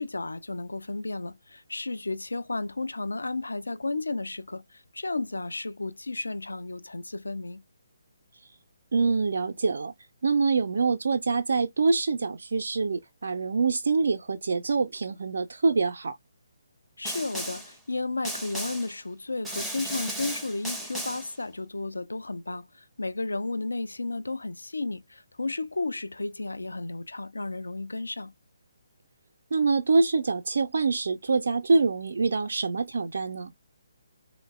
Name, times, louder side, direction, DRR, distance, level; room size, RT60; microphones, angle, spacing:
voice 1, 0.0-7.6 17.0-28.3, left 2 dB, 70° left, 0.3 m, -33 dB
voice 2, 8.9-9.9 10.2-16.2 29.5-33.5, right 4 dB, 55° right, 0.4 m, -25 dB
Snare drum, 17.0-17.7 18.2-18.9 19.4-21.3, equal, ahead, 0.5 m, -35 dB
3.8 x 2.0 x 2.2 m
figure-of-eight pair, 140°, 0 cm